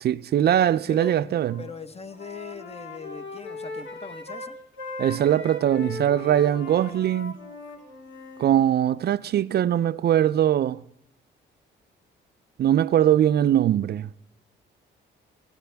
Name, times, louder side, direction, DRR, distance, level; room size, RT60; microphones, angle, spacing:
voice 1, 0.0-1.6 5.0-7.4 8.4-10.8 12.6-14.1, right 11 dB, 55° right, 0.5 m, -21 dB
Wind instrument woodwind instrument, 1.3-1.7 2.0-8.6, left 3 dB, 65° left, 3.9 m, -39 dB
voice 2, 1.6-4.6, left 5 dB, 30° left, 1.2 m, -40 dB
23.5 x 14.0 x 3.5 m
cardioid pair, 90°, 20 cm